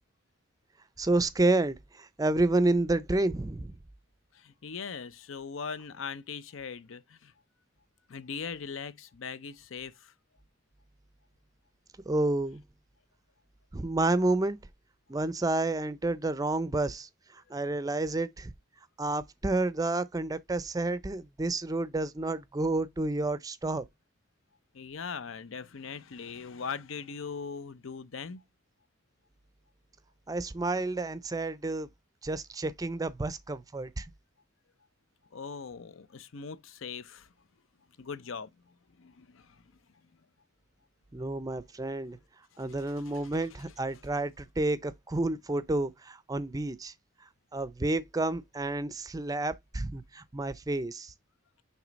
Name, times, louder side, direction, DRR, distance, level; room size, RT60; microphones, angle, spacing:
voice 1, 1.0-3.7 12.1-12.6 13.7-14.6 15.1-18.5 19.0-23.8 30.3-31.9 32.2-34.1 41.1-42.2 42.6-46.9 47.5-51.1, right 2 dB, 15° right, 0.4 m, -30 dB
voice 2, 4.3-7.3 8.1-10.1 24.7-28.4 35.3-37.3 38.0-38.5 39.0-39.6 43.0-43.4, left 5 dB, 75° left, 0.6 m, -40 dB
6.2 x 3.2 x 5.1 m
head